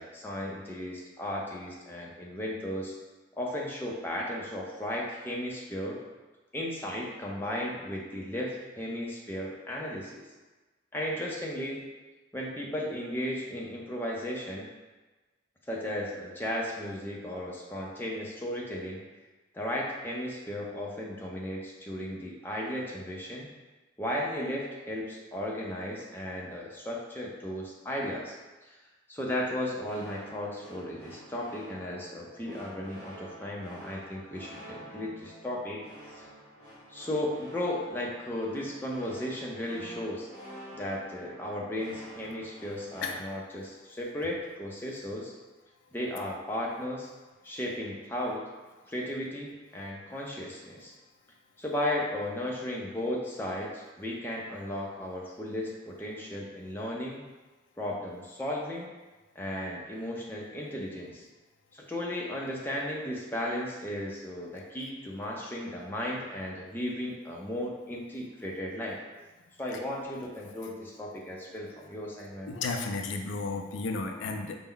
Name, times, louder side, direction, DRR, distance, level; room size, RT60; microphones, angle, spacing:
voice 1, 0.0-2.9 3.4-6.0 6.5-10.3 10.9-11.8 12.3-14.7 15.7-19.0 19.5-23.5 24.0-28.3 28.6-28.8 29.1-35.9 36.9-40.3 40.7-45.3 45.9-47.1 47.4-48.4 48.9-50.9 51.6-57.2 57.8-58.9 59.4-61.3 61.7-69.0 69.6-72.5, left 1 dB, 10° left, -3 dB, 0.5 m, -35 dB
sound 1, 29.8-43.1, right 1 dB, 50° right, 1.4 m, -49 dB
voice 2, 72.5-74.6, left 3 dB, 75° left, 4 dB, 0.4 m, -33 dB
4.2 x 2.0 x 3.8 m, 1.2 s
head